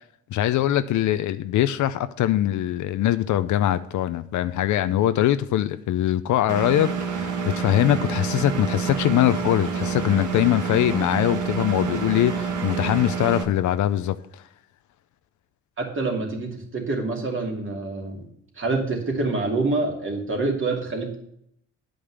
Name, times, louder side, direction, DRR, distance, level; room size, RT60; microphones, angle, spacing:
voice 1, 0.3-14.4, left 12 dB, 70° left, 12 dB, 0.6 m, -22 dB
Engine, 6.5-13.4, right 6 dB, 75° right, 1.3 m, -28 dB
voice 2, 15.8-18.2 18.6-21.2, right 3 dB, 40° right, 1 dB, 2.6 m, -26 dB
9.4 x 5.1 x 7.2 m, 0.71 s
cardioid pair, 90°, 30 cm